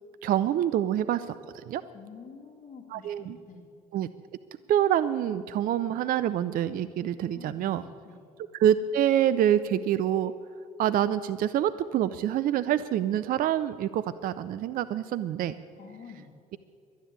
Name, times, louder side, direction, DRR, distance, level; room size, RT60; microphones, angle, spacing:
voice 1, 0.2-1.8 2.9-3.4 3.9-4.1 4.7-7.8 8.5-10.3 10.8-15.6, right 10 dB, 50° right, 14 dB, 0.5 m, -26 dB
voice 2, 1.9-3.6 7.3-8.2 15.8-16.3, left 5 dB, 40° left, -3 dB, 2.2 m, -48 dB
12.0 x 10.5 x 9.6 m, 2.4 s
hypercardioid pair, 55°, 19 cm